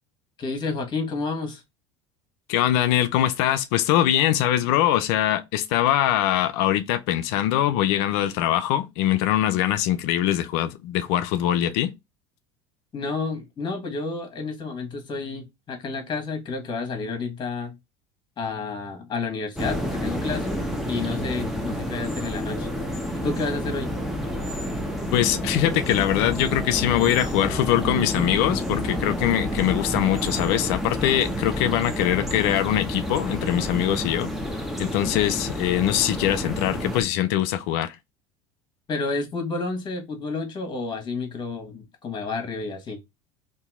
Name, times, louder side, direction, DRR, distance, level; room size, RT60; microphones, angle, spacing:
voice 1, 0.4-1.6 12.9-17.8 18.4-20.6 20.9-22.7 23.2-23.9 38.9-43.0, left 4 dB, 35° left, 1.4 m, -30 dB
voice 2, 2.5-11.9 25.1-34.3 34.8-37.9, left 12 dB, 70° left, 0.5 m, -22 dB
sound 1, 19.6-37.0, equal, ahead, 0.9 m, -29 dB
2.8 x 2.6 x 3.6 m
hypercardioid pair, 85°, 14 cm